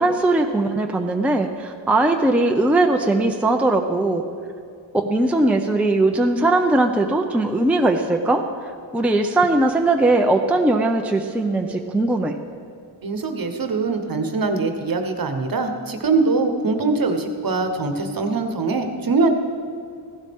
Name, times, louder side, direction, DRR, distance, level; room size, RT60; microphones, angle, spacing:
voice 1, 0.0-4.2 5.0-8.4 8.9-12.4, right 2 dB, 5° right, 3 dB, 0.6 m, -19 dB
voice 2, 13.0-19.3, right 3 dB, 45° right, 6 dB, 1.2 m, -22 dB
15.5 x 12.0 x 3.7 m, 2.3 s
wide cardioid pair, 90°, 47 cm